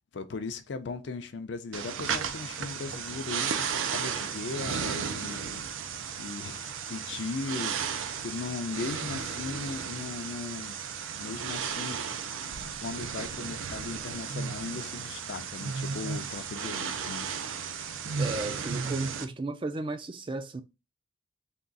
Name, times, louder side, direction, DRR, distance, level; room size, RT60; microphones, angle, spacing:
voice 1, 0.1-5.7 6.2-7.8 8.2-10.8 11.2-12.1 12.8-17.3, left 4 dB, 60° left, 0.4 m, -38 dB
sound 1, 1.7-19.3, right 6 dB, 85° right, 0.5 m, -34 dB
voice 2, 18.2-20.6, right 2 dB, 25° right, 0.3 m, -35 dB
3.6 x 2.4 x 3.8 m
head